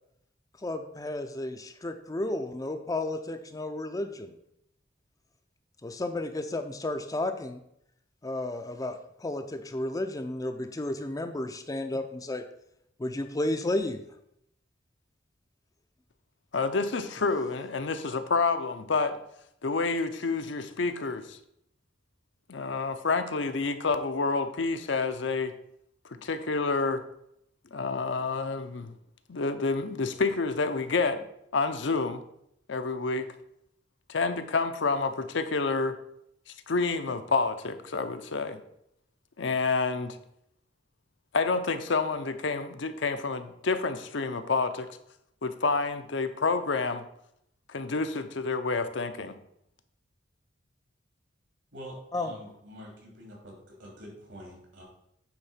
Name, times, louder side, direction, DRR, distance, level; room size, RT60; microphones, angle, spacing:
voice 1, 0.6-4.3 5.8-7.6 8.2-12.4 13.0-14.0 52.1-52.3, left 2 dB, 20° left, 7 dB, 0.5 m, -32 dB
voice 2, 16.5-19.2 19.6-21.4 22.5-25.5 26.2-27.0 27.7-28.9 29.3-31.2 31.5-32.2 32.7-33.3 34.1-36.0 36.7-38.6 39.4-40.2 41.3-44.9 45.4-47.0 47.7-49.3, left 4 dB, 70° left, 8 dB, 0.7 m, -28 dB
voice 3, 51.7-54.8, equal, 75° right, -1 dB, 3.2 m, -46 dB
8.8 x 3.7 x 5.6 m, 0.76 s
head